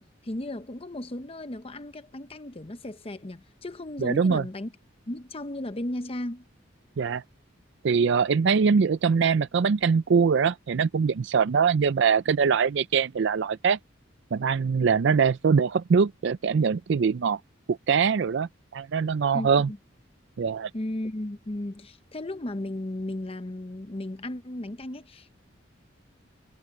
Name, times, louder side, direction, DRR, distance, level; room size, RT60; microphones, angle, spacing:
voice 1, 0.0-4.7 5.1-6.4 19.3-19.8 20.7-25.3, left 1 dB, 30° left, 0.8 m, -35 dB
voice 2, 4.0-4.4 7.0-7.2 7.8-13.8 14.3-17.4 17.7-19.7 20.4-20.7, right 6 dB, 60° right, 0.4 m, -23 dB
head